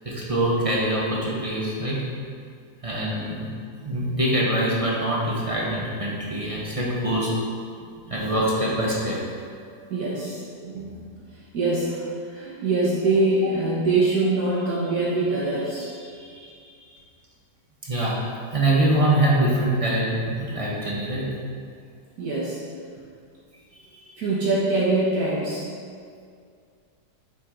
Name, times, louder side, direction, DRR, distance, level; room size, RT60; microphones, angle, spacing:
voice 1, 0.0-2.0 2.8-3.5 3.8-7.3 8.1-9.2 17.8-21.4, right 1 dB, 25° right, -5 dB, 1.1 m, -24 dB
voice 2, 9.7-11.0 11.5-17.0 22.2-22.6 23.7-25.7, right 2 dB, 60° right, -7 dB, 1.7 m, -25 dB
7.5 x 6.0 x 3.8 m, 2.2 s
omnidirectional pair, 1.8 m